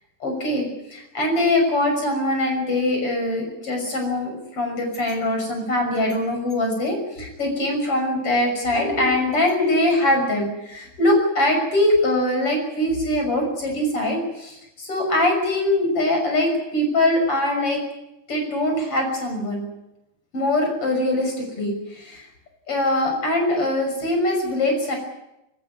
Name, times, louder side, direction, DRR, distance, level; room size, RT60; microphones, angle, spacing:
voice 1, 0.2-17.8 18.3-19.7 20.3-22.3 22.7-25.0, left 1 dB, 35° left, 3 dB, 7.0 m, -22 dB
26.0 x 14.5 x 9.5 m, 0.91 s
omnidirectional pair, 4.5 m